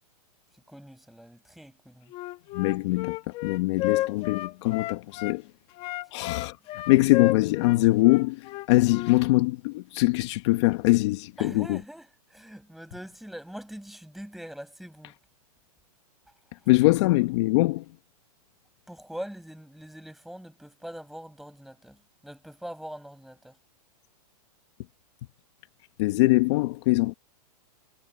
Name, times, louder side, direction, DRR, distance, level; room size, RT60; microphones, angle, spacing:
voice 1, 0.7-2.1 11.4-15.2 18.9-23.6, equal, ahead, 7.2 m, -43 dB
Wind instrument woodwind instrument, 2.1-5.4 5.7-9.2, left 17 dB, 30° left, 1.4 m, -32 dB
voice 2, 2.5-3.2 3.4-5.4 6.1-11.8 16.7-17.8 26.0-27.1, left 20 dB, 45° left, 1.3 m, -23 dB
hypercardioid pair, 150°, 20 cm